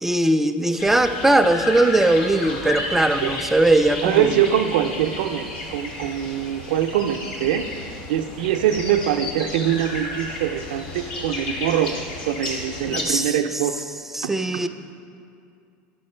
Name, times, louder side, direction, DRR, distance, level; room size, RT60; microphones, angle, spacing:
voice 1, 0.0-4.4 12.9-13.4 14.1-14.7, right 1 dB, 5° right, 8 dB, 0.3 m, -19 dB
sound 1, 0.8-13.0, left 2 dB, 80° left, 1.5 m, -32 dB
voice 2, 4.0-7.6 8.1-13.8 14.2-14.3, right 10 dB, 80° right, 5 dB, 0.4 m, -23 dB
11.0 x 5.5 x 4.3 m, 2.4 s
supercardioid pair, 125°, 5 cm